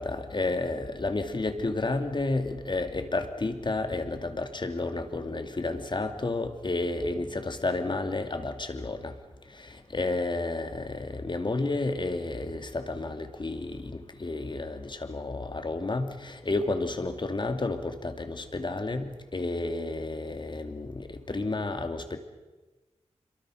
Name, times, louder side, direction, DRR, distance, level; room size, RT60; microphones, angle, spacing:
voice 1, 0.0-9.1 9.9-22.2, left 2 dB, 40° left, 7 dB, 2.5 m, -31 dB
27.0 x 23.5 x 6.4 m, 1.2 s
wide cardioid pair, 70°, 12 cm